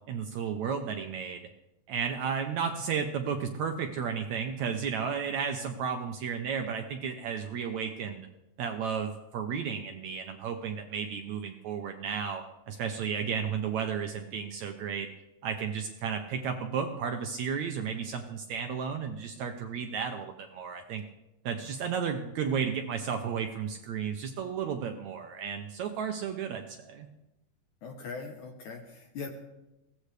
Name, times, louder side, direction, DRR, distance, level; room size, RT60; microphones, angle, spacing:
voice 1, 0.1-1.5 1.9-8.3 8.6-15.1 15.4-21.0 21.5-27.1, right 7 dB, 75° right, 5 dB, 1.7 m, -33 dB
voice 2, 27.8-29.3, left 4 dB, 70° left, 3 dB, 2.2 m, -40 dB
21.5 x 16.5 x 3.3 m, 0.96 s
omnidirectional pair, 4.1 m